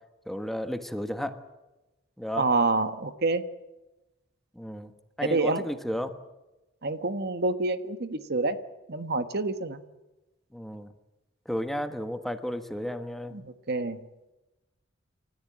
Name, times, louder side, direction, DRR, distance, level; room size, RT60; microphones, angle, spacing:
voice 1, 0.3-1.4 2.2-2.4 4.6-4.9 5.2-6.1 10.5-10.9 11.5-13.4, equal, ahead, 8 dB, 1.3 m, -33 dB
voice 2, 2.4-3.4 5.2-5.6 6.8-8.6 8.9-9.8 13.3-14.0, right 3 dB, 55° right, 10 dB, 1.3 m, -27 dB
30.0 x 14.0 x 8.8 m, 1.0 s
head